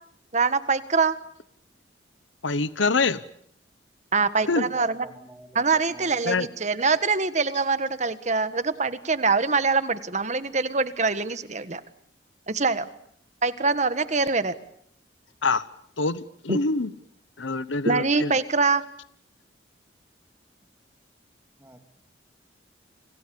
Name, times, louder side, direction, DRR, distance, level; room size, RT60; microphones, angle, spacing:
voice 1, 0.3-1.2 4.1-5.1 5.5-11.8 12.5-12.9 13.4-14.5 16.5-16.6 17.8-18.8, right 4 dB, 40° right, 12 dB, 1.5 m, -24 dB
voice 2, 2.4-3.2 4.5-4.7 6.3-6.5 15.4-15.6 16.0-16.9 17.4-18.3, left 3 dB, 90° left, 16 dB, 1.0 m, -25 dB
voice 3, 4.4-6.5 21.6-21.8, right 1 dB, 15° right, 6 dB, 3.0 m, -47 dB
30.0 x 26.0 x 7.1 m, 0.66 s
head